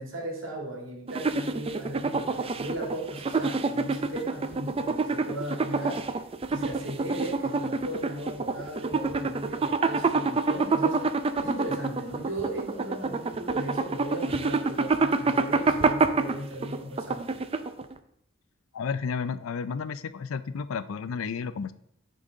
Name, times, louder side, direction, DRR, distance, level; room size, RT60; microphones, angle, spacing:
voice 1, 0.0-6.1 6.5-17.4, right 1 dB, 70° right, 0 dB, 2.0 m, -36 dB
sound 1, 1.1-17.9, right 4 dB, 30° right, 0.4 m, -27 dB
voice 2, 18.7-21.7, left 5 dB, 85° left, 13 dB, 0.4 m, -32 dB
9.7 x 3.9 x 3.9 m, 0.72 s
head